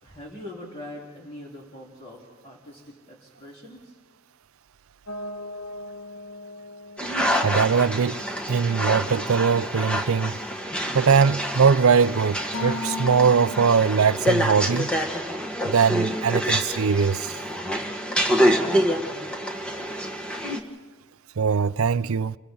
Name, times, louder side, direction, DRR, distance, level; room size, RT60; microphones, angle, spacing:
voice 1, 0.0-4.0, left 1 dB, 25° left, 3.8 m, -42 dB
sound 1, 5.1-10.5 12.5-14.4, left 2 dB, 80° left, 1.8 m, -38 dB
sound 2, 7.0-20.6, equal, 5° left, 1.5 m, -27 dB
voice 2, 7.4-10.4 10.9-14.9 15.6-17.4 21.4-22.4, right 6 dB, 75° right, 0.5 m, -21 dB
30.0 x 24.5 x 3.9 m
head